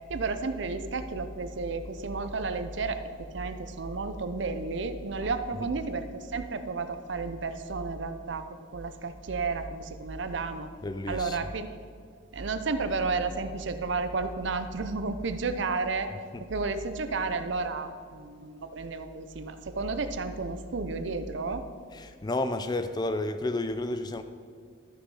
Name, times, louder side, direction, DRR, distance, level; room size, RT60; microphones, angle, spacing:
voice 1, 0.1-8.4 8.7-10.7 11.1-11.8 12.3-16.1 16.5-21.6, right 3 dB, 60° right, 9 dB, 0.6 m, -32 dB
voice 2, 10.8-11.4 16.3-16.4 21.9-24.2, left 2 dB, 20° left, 10 dB, 0.3 m, -31 dB
13.0 x 6.3 x 4.8 m, 2.1 s
head